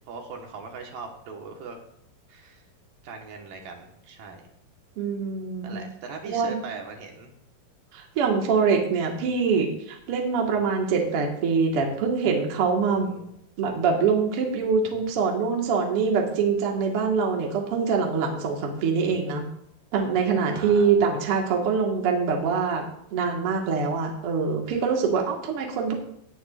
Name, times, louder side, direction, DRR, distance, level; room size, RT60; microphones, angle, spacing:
voice 1, 0.1-1.8 2.3-2.6 3.0-4.5 5.6-7.3 12.9-13.3 20.5-21.0, right 4 dB, 70° right, 2 dB, 2.9 m, -40 dB
voice 2, 5.0-5.8 6.2-6.6 7.9-13.1 13.6-19.4 19.9-22.8 23.1-25.9, right 5 dB, 50° right, 0 dB, 2.0 m, -24 dB
18.5 x 10.0 x 2.5 m, 0.73 s
omnidirectional pair, 4.3 m